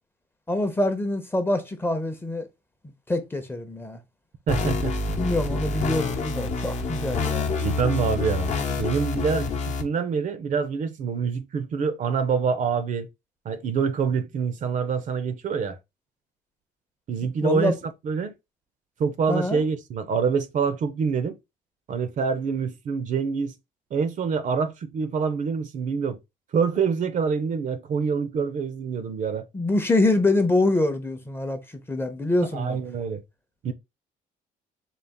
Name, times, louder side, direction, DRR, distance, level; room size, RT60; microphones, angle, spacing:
voice 1, 0.5-2.5 3.1-4.0 5.1-7.6 17.4-17.8 19.3-19.6 29.5-31.6 31.9-32.8, left 2 dB, 15° left, 0.7 m, -25 dB
sound 1, 4.5-9.8, left 3 dB, 45° left, 0.8 m, -27 dB
voice 2, 4.5-4.9 7.6-13.1 13.4-15.8 17.1-17.8 18.0-18.3 19.0-21.4 21.9-23.5 23.9-26.2 26.5-29.5 32.5-33.2 33.6-33.7, right 6 dB, 50° right, 0.7 m, -26 dB
4.0 x 2.4 x 3.5 m
cardioid pair, 110°, 17 cm